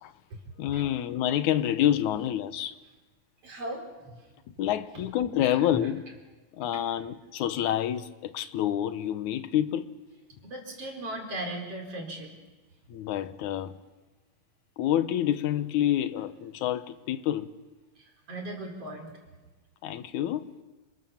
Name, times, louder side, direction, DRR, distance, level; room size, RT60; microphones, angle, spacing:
voice 1, 0.6-2.8 4.6-6.0 6.6-9.9 12.9-13.7 14.8-17.5 19.8-20.5, left 11 dB, 70° left, 2.3 m, -28 dB
voice 2, 3.4-4.2 4.9-5.0 5.5-5.9 6.7-6.8 10.4-12.3 18.0-19.1, right 1 dB, 45° right, 5.1 m, -38 dB
30.0 x 26.5 x 7.2 m
omnidirectional pair, 3.9 m